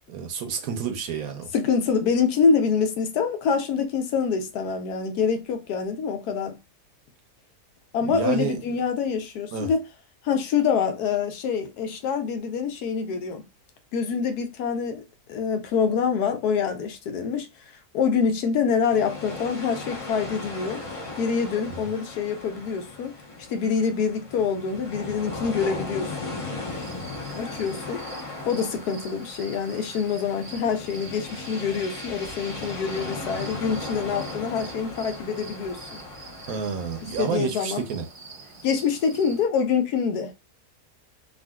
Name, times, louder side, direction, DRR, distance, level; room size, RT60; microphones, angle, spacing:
voice 1, 0.1-1.5 8.0-8.6 9.5-9.7 36.5-38.1, right 7 dB, 70° right, 1.1 m, -29 dB
voice 2, 1.5-6.6 7.9-9.8 10.2-13.4 13.9-15.0 15.3-17.5 17.9-20.8 21.2-23.1 23.5-26.3 27.4-28.0 28.5-36.0 37.2-37.8 38.6-40.3, left 6 dB, 75° left, 1.1 m, -25 dB
sound 1, 18.9-37.3, left 3 dB, 30° left, 0.7 m, -37 dB
sound 2, 26.7-39.5, right 3 dB, 45° right, 0.9 m, -46 dB
3.6 x 2.4 x 2.2 m
omnidirectional pair, 1.7 m